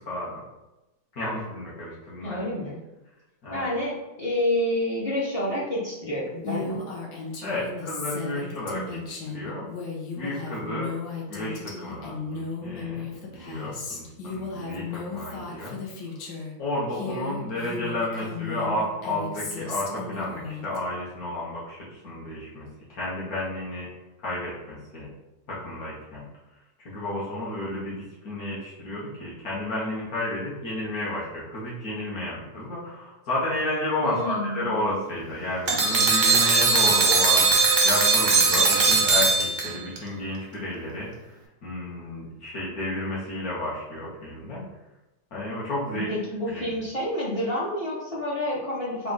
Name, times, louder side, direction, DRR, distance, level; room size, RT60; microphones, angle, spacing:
voice 1, 0.1-0.4 1.1-2.4 3.4-3.7 7.4-9.7 10.1-10.9 11.3-15.8 16.6-23.9 24.2-25.1 25.5-26.2 26.8-41.3 41.6-44.6 45.3-46.1 46.5-46.7, left 1 dB, 65° left, -7 dB, 1.4 m, -32 dB
voice 2, 2.2-2.8 3.5-6.8 34.0-34.7 45.9-49.1, left 1 dB, 35° left, -7 dB, 0.6 m, -28 dB
Female speech woman speaking, 6.4-16.5 16.9-20.8, left 4 dB, 85° left, 1.3 m, -35 dB
sound 1, 35.7-40.0, right 4 dB, 70° right, 0.4 m, -20 dB
3.7 x 2.3 x 3.8 m, 0.99 s
omnidirectional pair, 1.7 m